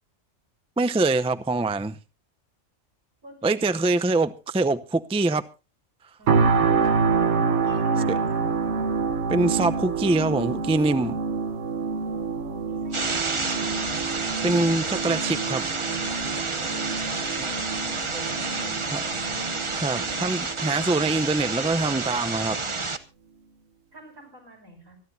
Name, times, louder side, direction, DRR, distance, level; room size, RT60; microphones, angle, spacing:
voice 1, 0.8-2.0 3.4-5.4 8.1-8.2 9.3-11.2 14.4-15.6 18.9-19.0 19.7-22.6, right 2 dB, 10° right, 0.3 m, -24 dB
voice 2, 3.2-3.6 6.2-8.4 11.9-13.4 16.5-18.8 23.9-25.0, right 1 dB, 85° right, 7.0 m, -47 dB
sound 1, 6.3-21.3 21.8-21.9, right 5 dB, 55° right, 1.4 m, -27 dB
sound 2, 12.9-23.0, right 4 dB, 25° right, 0.8 m, -29 dB
25.0 x 11.5 x 2.7 m
omnidirectional pair, 1.4 m